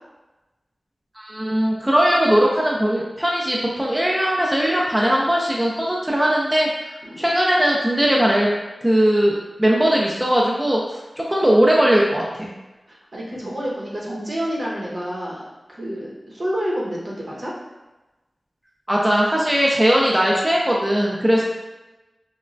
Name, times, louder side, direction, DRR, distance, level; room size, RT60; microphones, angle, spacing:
voice 1, 1.2-8.5 8.8-10.8 11.2-12.5 18.9-21.4, equal, 15° right, -3 dB, 0.4 m, -19 dB
voice 2, 12.9-15.4 15.7-17.5 21.3-21.4, equal, 60° right, -5 dB, 0.8 m, -29 dB
3.0 x 2.1 x 2.5 m, 1.1 s
wide cardioid pair, 65°, 0 cm